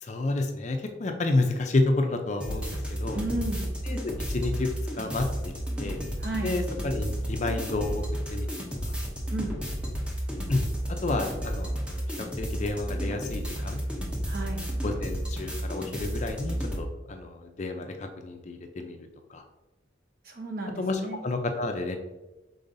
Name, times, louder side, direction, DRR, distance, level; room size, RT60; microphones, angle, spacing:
voice 1, 0.0-3.2 3.9-6.0 6.4-8.0 8.3-8.5 8.9-9.0 10.5-10.7 11.0-12.0 12.4-13.8 14.8-19.0 19.3-19.4 20.8-22.0, left 2 dB, 35° left, 5 dB, 0.4 m, -30 dB
sound 1, 2.4-16.8, equal, 5° right, 0.6 m, -32 dB
voice 2, 3.1-3.7 6.2-6.5 9.3-9.5 14.3-14.6 20.2-21.2, right 2 dB, 50° right, 0 dB, 0.9 m, -33 dB
5.2 x 3.8 x 2.6 m, 1.1 s
head